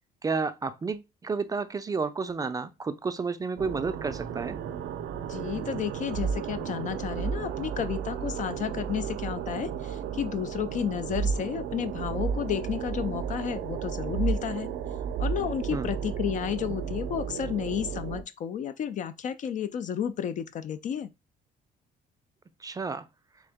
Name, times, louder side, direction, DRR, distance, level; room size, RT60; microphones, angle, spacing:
voice 1, 0.2-4.6 15.7-15.9 22.6-23.1, right 4 dB, 20° right, 0.4 m, -31 dB
sound 1, 3.6-18.2, right 7 dB, 75° right, 0.5 m, -33 dB
voice 2, 5.2-14.7 15.2-21.1, left 9 dB, 50° left, 0.4 m, -32 dB
3.8 x 3.5 x 3.5 m
cardioid pair, 110°, 17 cm